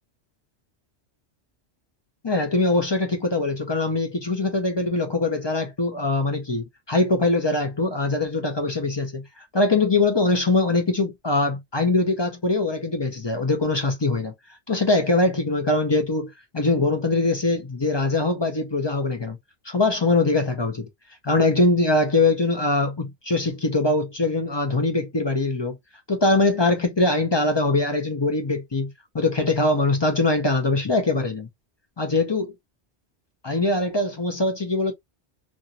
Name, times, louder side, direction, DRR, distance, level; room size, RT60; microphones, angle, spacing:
voice 1, 2.2-19.4 19.6-20.9 21.2-25.8 26.1-31.5 32.0-32.5 33.4-34.9, left 2 dB, 35° left, 0.5 m, -22 dB
2.9 x 2.6 x 2.6 m
omnidirectional pair, 1.2 m